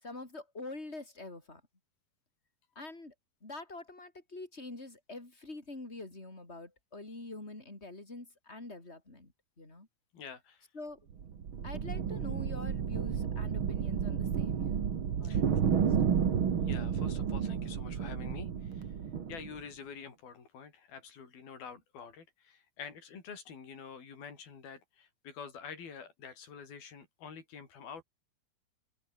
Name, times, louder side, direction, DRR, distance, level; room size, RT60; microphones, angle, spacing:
voice 1, 0.0-1.6 2.8-3.1 3.4-9.3 9.6-9.9 10.7-11.0 11.6-14.8 15.2-16.1, left 2 dB, 15° left, 5.2 m, -46 dB
voice 2, 10.1-10.7 15.2-15.4 16.6-18.9 19.3-28.0, left 6 dB, 70° left, 6.9 m, -47 dB
sound 1, 11.1-19.6, right 7 dB, 45° right, 1.9 m, -31 dB
omnidirectional pair, 4.5 m